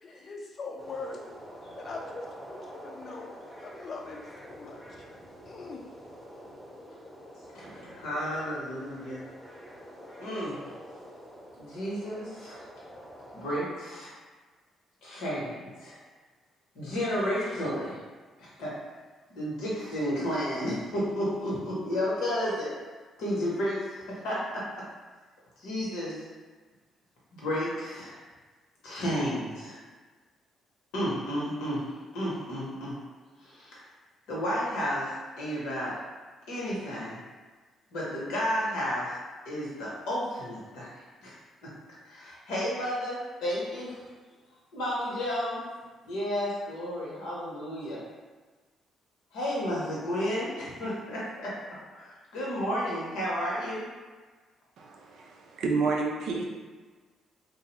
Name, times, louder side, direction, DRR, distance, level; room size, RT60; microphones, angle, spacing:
voice 1, 0.0-1.3 1.8-5.0 5.5-5.8, left 3 dB, 55° left, 0 dB, 0.4 m, -42 dB
sound 1, 0.8-13.6, equal, 15° left, 0.7 m, -47 dB
voice 2, 7.5-9.3 10.2-10.8 11.6-12.6 13.3-14.1 15.0-16.0 16.7-18.0 18.4-18.7 19.3-22.7 23.2-24.6 25.6-26.3 27.3-28.2 28.8-29.8 30.9-33.0 33.4-33.9 34.3-35.9 36.5-37.2 37.9-39.2 39.4-41.7 42.0-44.0 44.7-45.6 46.0-48.0 49.3-51.5 51.9-53.9, equal, 75° left, -6 dB, 0.8 m, -32 dB
voice 3, 54.8-56.4, right 4 dB, 70° right, 0 dB, 0.4 m, -30 dB
2.5 x 2.0 x 2.9 m, 1.4 s
hypercardioid pair, 50°, 0 cm